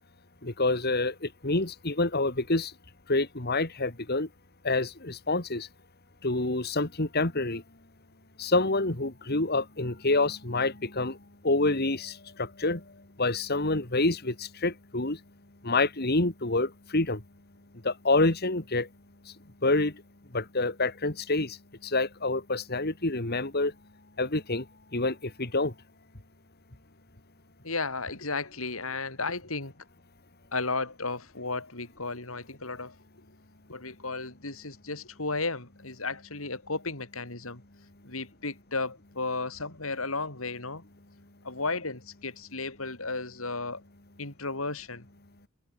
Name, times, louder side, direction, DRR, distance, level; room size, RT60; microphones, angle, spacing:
voice 1, 0.4-2.7 3.1-4.3 4.6-5.7 6.2-7.6 8.4-11.2 11.4-12.8 13.2-15.2 15.6-17.2 17.8-18.9 19.6-19.9 20.3-21.6 21.8-23.7 24.2-24.6 24.9-25.7, left 2 dB, 50° left, 2.7 m, -27 dB
voice 2, 27.6-29.7 30.5-32.9 33.7-37.6 38.0-40.8 41.4-43.8 44.2-45.1, left 3 dB, 75° left, 5.1 m, -34 dB
head